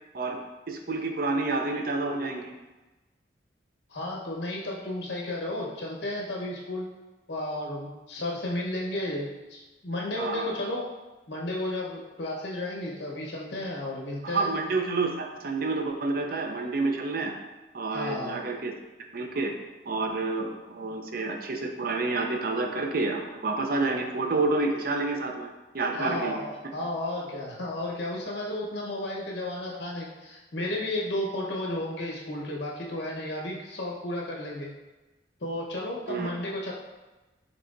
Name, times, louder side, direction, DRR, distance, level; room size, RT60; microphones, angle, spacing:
voice 1, 0.7-2.5 10.2-10.6 14.2-17.3 17.7-18.7 19.1-19.5 19.9-26.4 36.1-36.3, right 3 dB, 55° right, 3 dB, 0.5 m, -29 dB
voice 2, 3.9-6.9 7.3-10.9 11.3-14.5 17.9-18.4 25.9-34.7 35.4-36.7, left 1 dB, 75° left, -3 dB, 1.1 m, -33 dB
5.8 x 3.4 x 2.6 m, 1.1 s
head